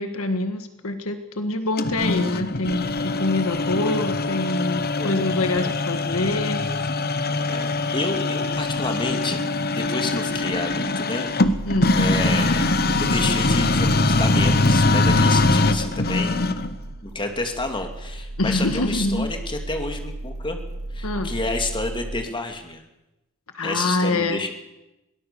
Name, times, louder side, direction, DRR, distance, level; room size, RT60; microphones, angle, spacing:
voice 1, 0.0-7.2 11.6-12.0 15.3-15.7 18.4-19.3 21.0-21.3 23.5-24.5, left 2 dB, 70° left, 8 dB, 1.7 m, -26 dB
sound 1, 1.8-16.8, left 2 dB, 45° left, 1.1 m, -22 dB
voice 2, 7.2-9.4 9.7-11.3 11.9-12.7 13.0-16.6 17.0-20.6 20.9-22.8 23.6-24.5, left 2 dB, 20° left, 5 dB, 2.6 m, -29 dB
sound 2, 11.4-22.3, right 1 dB, 75° right, 1.8 m, -34 dB
22.5 x 18.0 x 7.0 m, 0.95 s
head